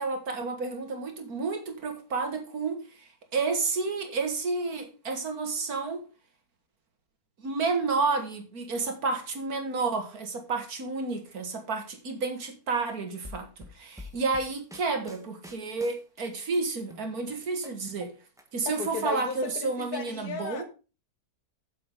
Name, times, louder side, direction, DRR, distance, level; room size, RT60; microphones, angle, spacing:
voice 1, 0.0-6.0 7.4-18.1 18.5-20.6, right 4 dB, 75° right, 2.3 m, -31 dB
sound 1, 13.2-16.6 16.9-18.4 18.7-19.6, left 2 dB, ahead, 1.4 m, -47 dB
voice 2, 18.7-20.6, left 5 dB, 90° left, 2.0 m, -35 dB
7.7 x 7.4 x 5.2 m
omnidirectional pair, 1.6 m